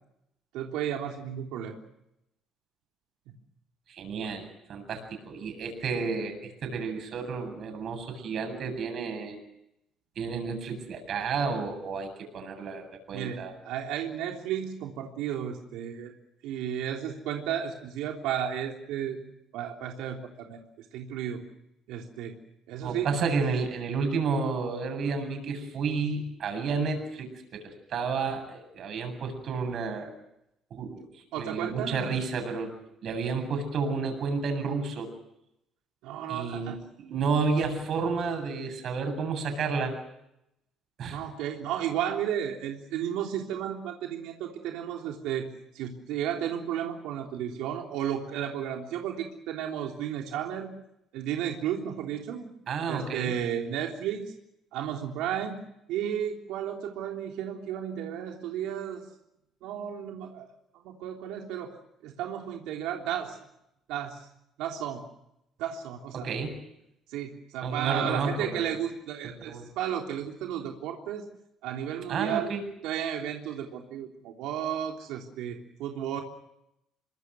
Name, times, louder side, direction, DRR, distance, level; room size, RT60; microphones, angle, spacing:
voice 1, 0.5-1.8 13.1-16.1 16.4-19.2 19.5-21.4 21.9-22.4 22.7-23.1 31.3-32.1 36.0-36.8 41.1-45.5 45.7-50.7 51.1-52.5 52.9-54.3 54.7-55.6 55.9-59.0 59.6-60.5 60.8-61.8 62.0-63.4 63.9-64.3 64.6-65.0 65.6-66.3 67.1-71.2 71.6-72.5 72.8-76.2, right 9 dB, 90° right, 1 dB, 3.5 m, -33 dB
voice 2, 3.9-9.4 10.2-13.5 22.8-30.1 30.7-32.7 33.0-35.1 36.3-36.7 37.0-39.9 41.0-41.2 52.7-53.3 66.1-66.5 67.6-68.7 69.4-69.7 72.1-72.6, right 5 dB, 40° right, 6 dB, 8.0 m, -31 dB
27.5 x 24.5 x 6.4 m, 0.82 s
cardioid pair, 175°, 0 cm